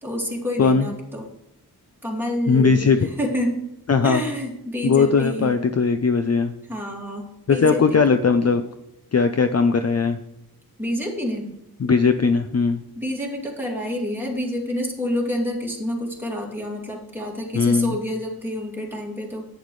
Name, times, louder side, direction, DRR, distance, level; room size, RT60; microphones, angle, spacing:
voice 1, 0.0-1.3 2.0-3.6 4.0-5.6 6.7-8.2 10.8-11.5 12.9-19.5, equal, 5° right, -2 dB, 2.5 m, -28 dB
voice 2, 2.5-3.0 3.9-4.2 4.8-6.5 7.5-8.6 9.1-10.2 11.8-12.8 17.5-18.0, left 5 dB, 40° left, 8 dB, 0.5 m, -19 dB
10.5 x 9.2 x 3.2 m, 0.85 s
wide cardioid pair, 95°, 39 cm